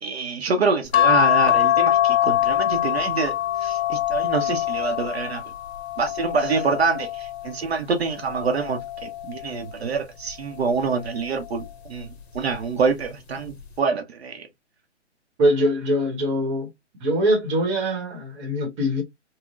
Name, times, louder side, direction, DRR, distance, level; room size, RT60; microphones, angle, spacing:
voice 1, 0.0-5.4 6.0-14.5, right 5 dB, 60° right, 0.7 m, -26 dB
sound 1, 0.9-7.5 8.2-9.6 10.8-11.3 11.6-11.7, left 13 dB, 60° left, 0.8 m, -23 dB
voice 2, 15.4-16.7 17.0-19.0, equal, 25° right, 1.0 m, -22 dB
3.8 x 2.1 x 2.4 m
hypercardioid pair, 145°, 36 cm